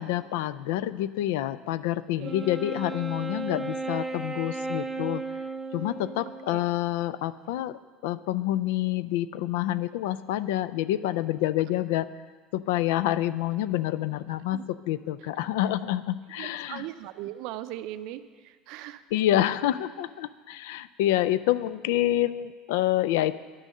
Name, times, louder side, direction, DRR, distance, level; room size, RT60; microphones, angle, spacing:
voice 1, 0.0-5.2 5.7-12.1 12.5-14.6 14.9-16.9 19.1-23.3, left 13 dB, 85° left, 15 dB, 0.3 m, -27 dB
Wind instrument woodwind instrument, 2.2-6.8, right 3 dB, ahead, 0.5 m, -35 dB
voice 2, 16.4-19.0, right 13 dB, 60° right, 12 dB, 0.5 m, -39 dB
9.9 x 6.3 x 6.5 m, 1.5 s
cardioid pair, 155°, 0 cm